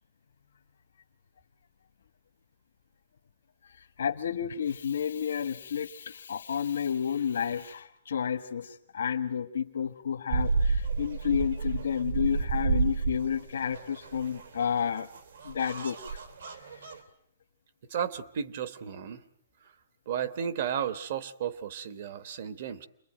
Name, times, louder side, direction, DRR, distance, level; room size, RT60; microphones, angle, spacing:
voice 1, 4.0-15.1 15.4-16.2, left 7 dB, 80° left, 1 dB, 1.4 m, -31 dB
sound 1, 10.3-17.0, right 4 dB, 75° right, 3.2 m, -31 dB
voice 2, 17.9-19.2 20.1-22.9, right 8 dB, 40° right, 12 dB, 1.1 m, -33 dB
28.0 x 22.0 x 9.0 m, 0.73 s
hypercardioid pair, 180°, 0 cm